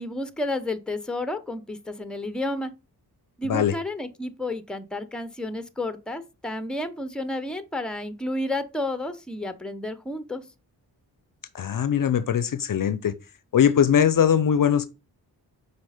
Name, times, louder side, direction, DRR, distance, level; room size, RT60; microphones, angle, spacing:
voice 1, 0.0-2.7 3.4-10.4, left 1 dB, ahead, 0.7 m, -31 dB
voice 2, 11.5-13.1 13.5-14.9, left 8 dB, 55° left, 0.6 m, -21 dB
5.2 x 4.2 x 4.9 m
cardioid pair, 60°, 39 cm